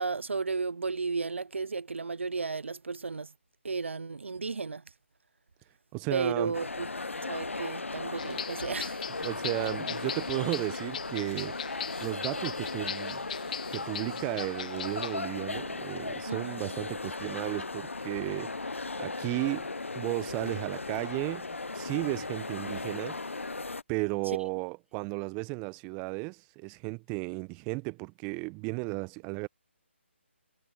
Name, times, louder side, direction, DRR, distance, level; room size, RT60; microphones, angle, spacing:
voice 1, 0.0-3.3 3.6-4.8 6.1-6.9 7.2-9.0 16.3-16.6, right 4 dB, 70° right, 0.7 m, -33 dB
voice 2, 5.9-6.6 9.2-11.5 12.0-13.3 13.7-18.5 19.0-19.7 19.9-21.5 21.7-23.2 23.9-29.5, right 30 dB, 20° right, 0.9 m, -34 dB
sound 1, 6.5-23.8, left 3 dB, 80° left, 0.9 m, -37 dB
sound 2, 8.2-15.2, left 9 dB, 40° left, 0.4 m, -40 dB
figure-of-eight pair, 145°, 7 cm